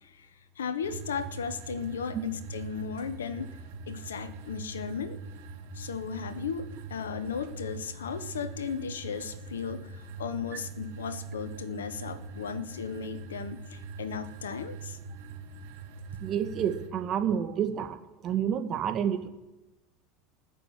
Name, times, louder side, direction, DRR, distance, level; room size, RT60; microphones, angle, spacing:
voice 1, 0.0-3.6 3.9-5.2 5.7-15.0, left 6 dB, 85° left, 14 dB, 1.2 m, -36 dB
sound 1, 0.8-16.9, right 4 dB, 70° right, 4.3 m, -42 dB
voice 2, 16.2-18.0 18.2-19.3, right 8 dB, 45° right, 6 dB, 2.0 m, -29 dB
20.0 x 6.9 x 8.8 m, 1.0 s
hypercardioid pair, 80°, 0 cm